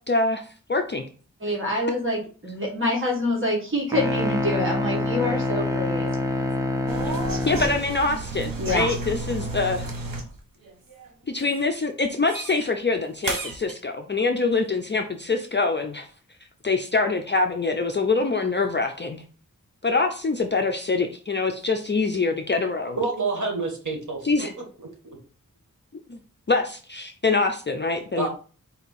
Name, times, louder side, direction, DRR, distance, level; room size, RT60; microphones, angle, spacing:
voice 1, 0.1-0.4 0.7-1.0 1.5-1.6 7.0-7.1 7.5-9.9 11.3-16.1 16.6-19.2 19.8-23.0 24.2-24.5 26.1-26.2 26.5-28.3, left 3 dB, 35° left, 4 dB, 0.5 m, -24 dB
voice 2, 1.4-6.1 8.6-8.9, left 1 dB, 35° right, -2 dB, 1.7 m, -26 dB
sound 1, 3.9-7.9, left 1 dB, 10° right, 0.6 m, -26 dB
sound 2, 6.9-10.4 10.6-11.1 11.4-11.7 12.3-12.7 13.2-13.7, right 2 dB, 85° right, 1.0 m, -32 dB
voice 3, 23.0-24.2 24.8-24.9 28.2-28.3, right 3 dB, 60° right, 0 dB, 1.6 m, -27 dB
4.5 x 2.8 x 4.1 m, 0.39 s
wide cardioid pair, 75°, 34 cm